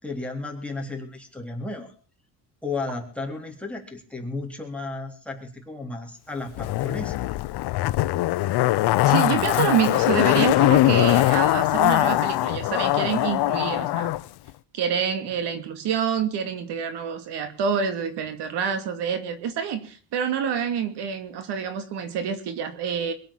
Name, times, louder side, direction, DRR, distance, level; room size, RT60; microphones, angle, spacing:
voice 1, 0.0-1.9 2.6-7.2, left 3 dB, 5° left, 0 dB, 3.7 m, -33 dB
Zipper (clothing), 6.6-14.2 14.5-14.6, left 16 dB, 70° left, 0.8 m, -21 dB
voice 2, 9.1-14.1 14.7-23.1, right 7 dB, 75° right, 9 dB, 2.7 m, -27 dB
22.0 x 7.9 x 7.3 m, 0.40 s
cardioid pair, 120°, 41 cm